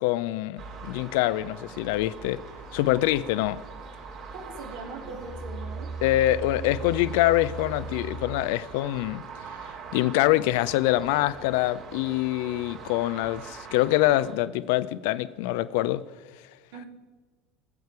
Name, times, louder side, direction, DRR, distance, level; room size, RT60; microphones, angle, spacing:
voice 1, 0.0-2.4 2.7-3.6 6.0-9.2 9.9-16.0, left 15 dB, 65° left, 0.5 m, -25 dB
sound 1, 0.6-14.3, right 5 dB, 50° right, 3.7 m, -43 dB
voice 2, 4.3-5.9 16.7-16.9, right 4 dB, 65° right, 2.0 m, -40 dB
Musical instrument, 5.0-8.6, right 4 dB, 5° right, 1.6 m, -37 dB
19.0 x 8.0 x 4.7 m
figure-of-eight pair, 70°, 0 cm